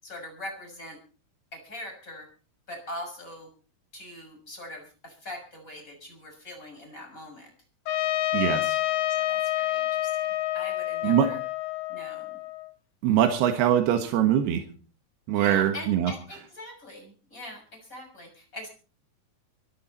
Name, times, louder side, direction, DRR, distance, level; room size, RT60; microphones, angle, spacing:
voice 1, 0.0-1.0 1.5-2.3 2.7-3.5 3.9-7.5 9.1-10.2 10.5-11.4 11.9-12.4 15.3-18.7, left 1 dB, 20° left, 3 dB, 6.9 m, -42 dB
Trumpet, 7.9-12.7, left 14 dB, 75° left, 3.1 m, -28 dB
voice 2, 8.3-8.8 11.0-11.3 13.0-14.6 15.3-16.1, right 10 dB, 85° right, 6 dB, 3.4 m, -23 dB
24.5 x 12.0 x 4.2 m, 0.38 s
omnidirectional pair, 4.5 m